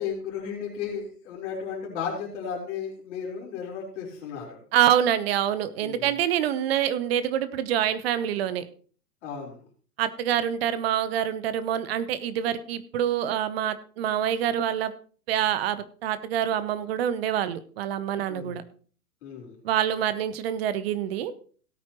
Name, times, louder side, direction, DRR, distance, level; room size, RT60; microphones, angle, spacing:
voice 1, 0.0-4.6 5.8-6.1 9.2-9.6 18.3-18.6 19.2-19.6, left 7 dB, 45° left, -2 dB, 4.4 m, -34 dB
voice 2, 4.7-8.7 10.0-14.9 15.3-18.6 19.6-21.3, right 10 dB, 40° right, 14 dB, 1.0 m, -26 dB
17.0 x 8.6 x 3.0 m, 0.42 s
figure-of-eight pair, 110°, 47 cm